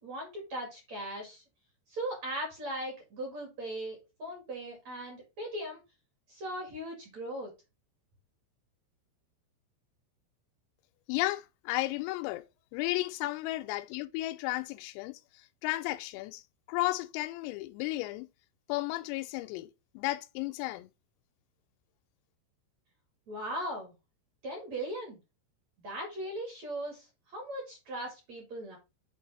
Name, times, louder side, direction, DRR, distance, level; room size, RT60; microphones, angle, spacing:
voice 1, 0.0-1.4 1.9-5.8 6.3-7.5 23.3-23.9 24.4-25.2 25.8-28.8, right 1 dB, 50° right, 2.3 m, -38 dB
voice 2, 11.1-12.4 12.7-15.2 15.6-16.4 16.7-18.3 18.7-19.7 20.0-20.9, left 18 dB, 85° left, 3.2 m, -33 dB
8.1 x 4.6 x 4.1 m
omnidirectional pair, 5.9 m